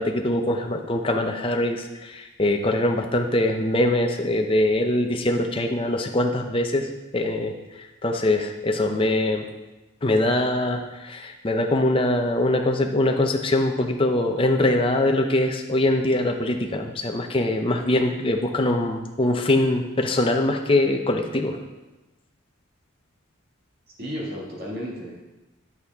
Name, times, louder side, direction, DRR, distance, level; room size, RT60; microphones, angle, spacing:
voice 1, 0.0-6.9 7.1-9.4 10.0-21.6, left 1 dB, 25° left, 3 dB, 0.6 m, -23 dB
voice 2, 23.9-25.2, equal, 45° right, -3 dB, 2.0 m, -33 dB
9.6 x 8.3 x 3.5 m, 1.1 s
head